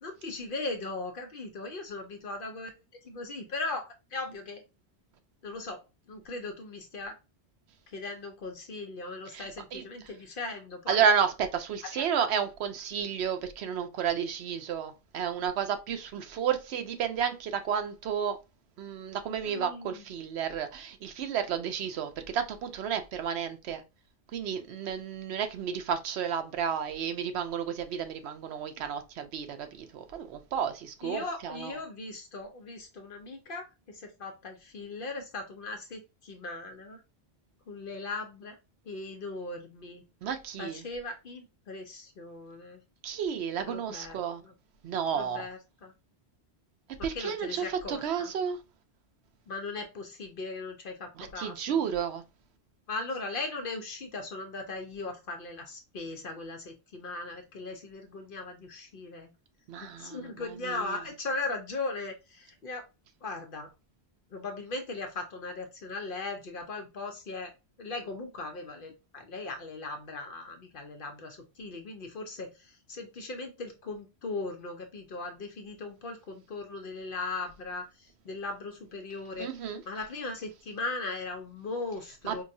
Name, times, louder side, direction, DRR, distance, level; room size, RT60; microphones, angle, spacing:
voice 1, 0.0-2.7 3.0-4.6 5.4-7.1 7.9-11.0 11.9-12.0 19.4-20.0 31.0-37.0 37.7-38.6 38.8-40.0 40.6-42.8 43.6-44.2 44.4-44.5 45.1-45.9 47.0-48.3 49.5-51.9 52.9-59.3 59.8-62.9 63.2-63.7 64.3-67.5 67.8-79.5 79.9-82.4, left 3 dB, 60° left, 0.8 m, -38 dB
voice 2, 9.3-9.8 10.9-18.4 18.8-23.8 24.3-31.8 40.2-40.8 43.0-44.4 44.8-45.5 47.0-48.6 51.2-52.2 59.7-61.0 79.4-79.8 82.2-82.4, right 7 dB, 80° right, 0.9 m, -32 dB
4.5 x 2.2 x 2.6 m
omnidirectional pair, 1.1 m